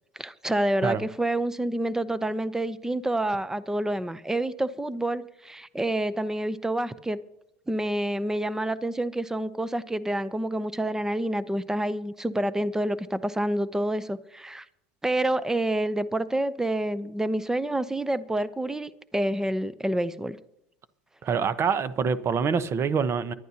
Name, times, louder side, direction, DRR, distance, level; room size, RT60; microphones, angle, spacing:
voice 1, 0.2-7.2 7.7-14.6 15.0-20.4, right 1 dB, 5° right, 0.7 m, -28 dB
voice 2, 21.2-23.3, right 6 dB, 35° right, 1.0 m, -25 dB
25.0 x 11.5 x 2.9 m
hypercardioid pair, 85°, 7 cm